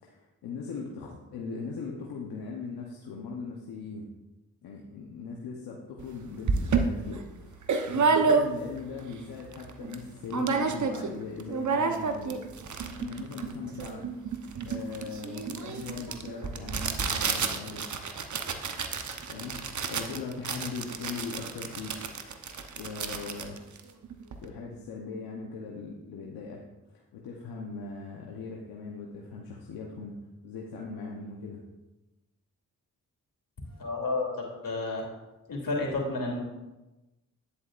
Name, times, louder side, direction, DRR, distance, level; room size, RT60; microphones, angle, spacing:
voice 1, 0.0-4.1 4.6-14.0 14.4-18.1 19.3-22.0 22.8-23.6 24.4-26.6 26.9-30.2 30.4-31.6, left 4 dB, 85° left, -1 dB, 1.0 m, -40 dB
sound 1, 6.0-6.1 6.5-8.9 9.3-9.4 9.5-10.0 10.3-11.1 11.4-24.5, right 5 dB, 50° right, 0.9 m, -30 dB
voice 2, 33.7-35.0 35.5-36.4, left 2 dB, 60° left, -1 dB, 3.0 m, -31 dB
9.9 x 8.3 x 2.5 m, 1.0 s
supercardioid pair, 45°, 37 cm